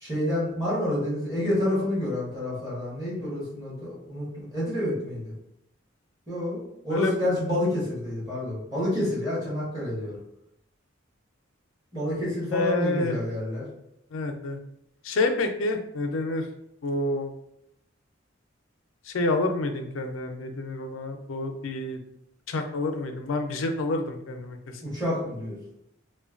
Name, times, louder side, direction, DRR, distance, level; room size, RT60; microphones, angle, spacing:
voice 1, 0.0-5.3 6.3-10.1 11.9-13.6 24.8-25.6, left 1 dB, 20° right, -9 dB, 1.2 m, -29 dB
voice 2, 12.5-13.2 14.1-14.6 15.0-16.5 16.8-17.3 19.0-22.0 22.5-24.8, left 2 dB, 85° left, 5 dB, 0.4 m, -28 dB
3.0 x 2.1 x 2.4 m, 0.77 s
head